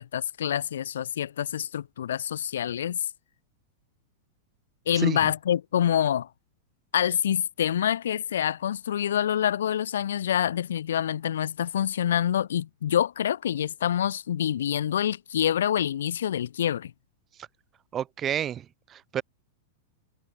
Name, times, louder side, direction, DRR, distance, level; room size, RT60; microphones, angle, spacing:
voice 1, 0.0-3.0 4.9-6.3 6.9-16.9, left 10 dB, 75° left, 2.2 m, -26 dB
voice 2, 4.9-5.3 17.4-17.5 17.9-19.2, right 10 dB, 30° right, 3.2 m, -31 dB
hypercardioid pair, 105°, 0 cm